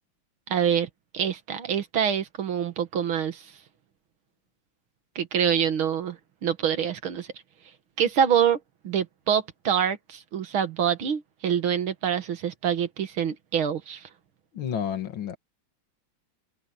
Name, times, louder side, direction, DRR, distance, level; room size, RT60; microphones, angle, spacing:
voice 1, 0.5-3.5 5.2-7.3 8.0-14.1, right 8 dB, 85° right, 2.5 m, -26 dB
voice 2, 14.5-15.4, left 8 dB, 70° left, 2.3 m, -30 dB
omnidirectional pair, 2.2 m